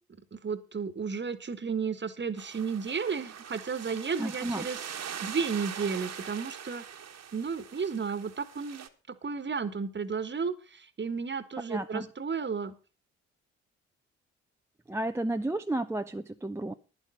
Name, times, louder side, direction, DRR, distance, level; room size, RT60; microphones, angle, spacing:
voice 1, 0.3-4.8 5.2-6.8 7.3-12.7, right 5 dB, 30° right, 14 dB, 1.5 m, -33 dB
sound 1, 2.4-8.9, right 8 dB, 45° right, 1.5 m, -42 dB
voice 2, 4.2-4.7 11.7-12.1 14.9-16.7, right 1 dB, 5° right, 7 dB, 0.6 m, -32 dB
11.5 x 10.5 x 5.2 m, 0.34 s
figure-of-eight pair, 40°, 36 cm